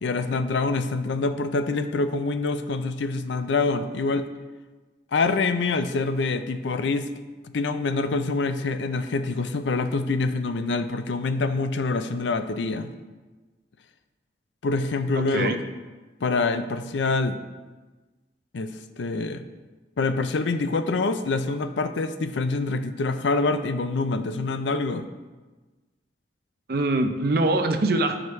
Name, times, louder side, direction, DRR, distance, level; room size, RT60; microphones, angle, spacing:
voice 1, 0.0-4.3 5.1-7.1 7.5-12.9 14.6-15.6 16.2-17.4 18.5-19.4 20.0-25.1, left 3 dB, 85° left, 10 dB, 0.5 m, -25 dB
voice 2, 15.1-15.6 26.7-28.2, right 2 dB, 55° right, 6 dB, 0.6 m, -23 dB
10.5 x 5.0 x 3.1 m, 1.3 s
head